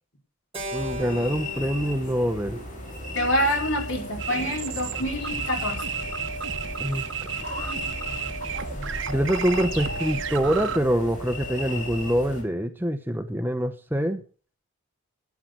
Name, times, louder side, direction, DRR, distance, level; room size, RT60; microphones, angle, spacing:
Keyboard (musical), 0.5-4.9, left 1 dB, 25° right, 4.0 m, -39 dB
sound 1, 0.7-12.4, left 1 dB, 35° left, 4.5 m, -35 dB
voice 1, 0.7-2.6 6.8-7.0 9.1-14.2, equal, 10° right, 8 dB, 0.8 m, -25 dB
voice 2, 3.1-5.8, equal, 60° left, 2 dB, 4.6 m, -26 dB
sound 2, 4.2-10.8, right 7 dB, 55° right, 1.2 m, -33 dB
12.0 x 10.0 x 6.1 m, 0.40 s
head